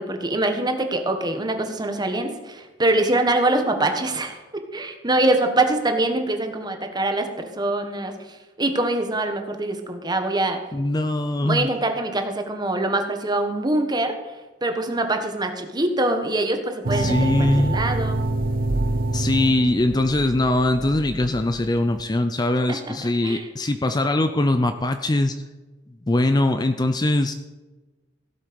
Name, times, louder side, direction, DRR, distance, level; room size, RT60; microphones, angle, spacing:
voice 1, 0.0-4.4 4.7-10.6 11.4-14.1 14.6-18.2 22.7-23.0 23.2-23.5, right 2 dB, 20° right, 6 dB, 1.3 m, -24 dB
voice 2, 10.7-11.7 16.9-17.8 19.1-25.4 26.1-27.3, left 1 dB, 20° left, 8 dB, 0.5 m, -21 dB
sound 1, 16.8-22.0, right 2 dB, 50° right, 0.6 m, -26 dB
16.5 x 7.6 x 5.2 m, 1.2 s
head